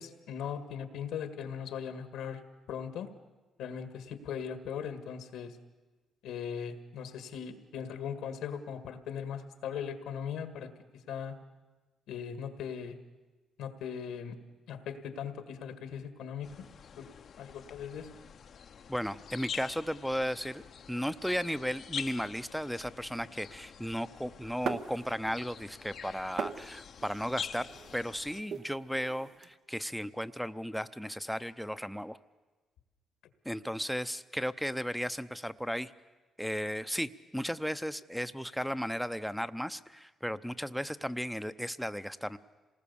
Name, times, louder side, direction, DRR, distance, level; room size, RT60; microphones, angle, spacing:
voice 1, 0.0-2.4 2.7-3.1 3.6-5.6 6.2-10.7 11.1-11.4 12.1-13.0 13.6-16.7 17.0-17.1 17.4-18.2, left 7 dB, 85° left, 9 dB, 1.8 m, -39 dB
sound 1, 16.4-28.4, left 7 dB, 55° left, 0.8 m, -46 dB
voice 2, 18.9-32.2 33.4-35.9 36.4-42.4, equal, ahead, 14 dB, 0.7 m, -35 dB
sound 2, 24.6-25.5 25.8-29.5, right 6 dB, 65° right, 1.0 m, -41 dB
26.5 x 19.5 x 7.1 m, 1.2 s
cardioid pair, 90°, 0 cm